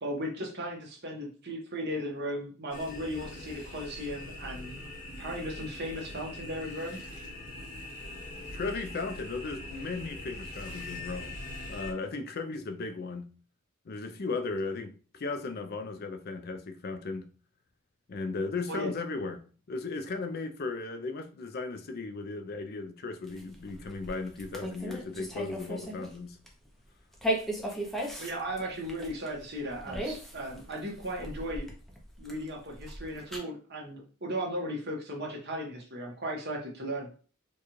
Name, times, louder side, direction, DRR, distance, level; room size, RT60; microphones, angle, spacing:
voice 1, 0.0-4.7 5.2-7.0 18.7-18.9 28.2-31.7 32.2-37.1, equal, 50° right, 1.2 m, -36 dB
sound 1, 2.7-11.9, left 1 dB, 80° left, 1.3 m, -42 dB
voice 2, 8.5-11.4 11.7-13.3 13.9-17.3 18.1-26.4, left 3 dB, 50° left, 0.5 m, -36 dB
sound 2, 23.3-26.2 26.5-26.7 27.1-33.4, right 1 dB, ahead, 0.6 m, -37 dB
4.6 x 2.3 x 3.0 m
head